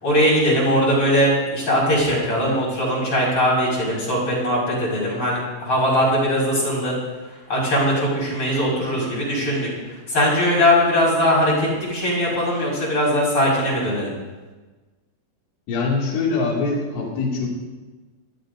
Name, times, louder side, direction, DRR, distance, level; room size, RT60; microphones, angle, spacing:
voice 1, 0.0-6.9 7.5-14.1, equal, 30° left, -5 dB, 6.1 m, -20 dB
voice 2, 15.7-17.5, left 3 dB, 75° left, -3 dB, 4.8 m, -23 dB
29.0 x 13.5 x 2.7 m, 1.3 s
omnidirectional pair, 5.4 m